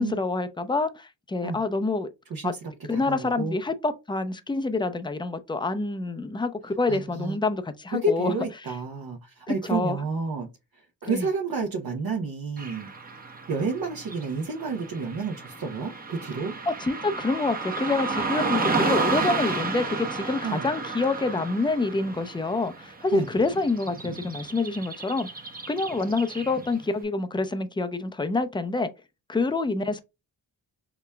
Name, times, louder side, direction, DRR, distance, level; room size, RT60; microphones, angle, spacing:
voice 1, 0.0-2.1 2.4-2.5 2.9-8.3 9.5-10.0 11.1-11.3 16.7-25.3 25.7-28.9 29.3-30.0, left 3 dB, 10° left, 0.5 m, -27 dB
voice 2, 2.9-3.6 6.9-7.4 7.9-10.5 11.0-12.9 13.5-16.6 20.4-20.7 23.1-23.3, right 3 dB, 55° right, 0.9 m, -30 dB
Car passing by / Traffic noise roadway noise, 12.6-26.8, right 3 dB, 20° right, 0.8 m, -32 dB
5.8 x 2.2 x 2.2 m
cardioid pair, 60°, 42 cm